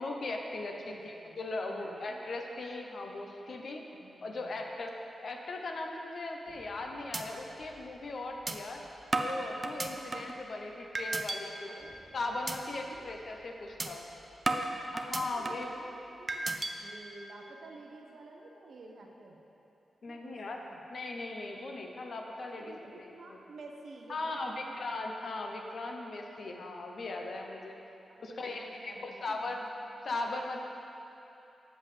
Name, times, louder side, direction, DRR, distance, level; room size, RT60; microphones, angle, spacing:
voice 1, 0.0-3.9 4.2-4.9 5.2-8.8 9.2-11.7 12.1-14.1 14.9-15.7 20.0-20.6 20.9-23.4 24.1-27.8 28.2-29.6 30.0-30.6, left 2 dB, 50° left, 2 dB, 0.6 m, -38 dB
voice 2, 0.8-2.2 4.0-4.6 10.4-10.5 11.7-11.9 12.9-13.1 15.3-16.4 16.8-19.4 20.1-20.8 22.4-24.9 28.1-29.7 30.0-30.2, right 3 dB, 55° right, 1 dB, 0.7 m, -51 dB
sound 1, 6.5-6.8 7.1-7.2 7.6-7.7 8.5-8.6 9.1-10.4 10.9-11.4 11.8-12.0 12.5-12.6 13.0-13.2 13.8-13.9 14.5-15.7 16.3-16.7, right 2 dB, 25° right, 0.3 m, -33 dB
7.7 x 7.4 x 3.2 m, 2.9 s
wide cardioid pair, 180°, 0 cm